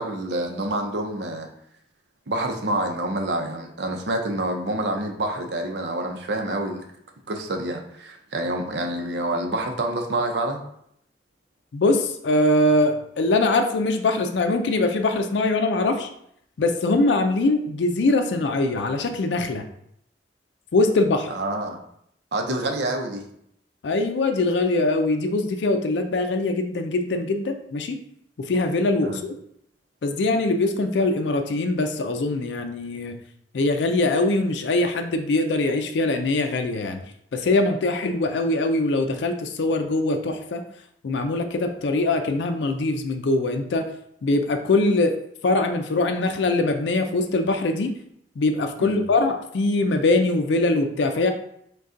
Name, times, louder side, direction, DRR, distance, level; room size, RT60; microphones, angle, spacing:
voice 1, 0.0-1.5 2.3-6.8 7.3-10.6 21.3-21.8 22.3-23.2 29.0-29.2 48.8-49.1, right 1 dB, 70° right, 4 dB, 0.6 m, -27 dB
voice 2, 11.7-16.1 16.6-19.6 20.7-21.3 23.8-28.0 28.4-29.3 30.0-33.1 33.5-37.0 37.3-40.6 41.0-43.9 44.2-45.1 45.4-47.9 48.4-51.3, left 2 dB, 80° left, 6 dB, 0.4 m, -22 dB
5.0 x 2.3 x 3.8 m, 0.71 s
head